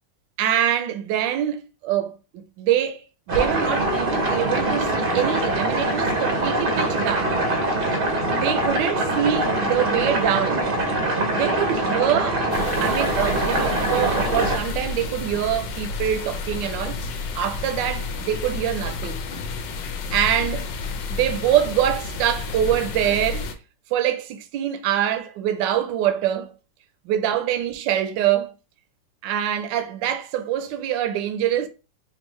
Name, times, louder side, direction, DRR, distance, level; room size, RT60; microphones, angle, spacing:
voice 1, 0.4-7.3 8.4-10.7 11.3-17.0 17.3-19.2 20.1-20.7 21.1-23.5 23.9-26.5 27.1-28.5 29.2-31.7, right 10 dB, 80° right, 1.3 m, -24 dB
sound 1, 3.3-14.6, right 1 dB, 50° right, 0.7 m, -23 dB
sound 2, 12.5-23.5, left 4 dB, 80° left, 1.3 m, -31 dB
4.4 x 2.7 x 3.0 m
omnidirectional pair, 2.0 m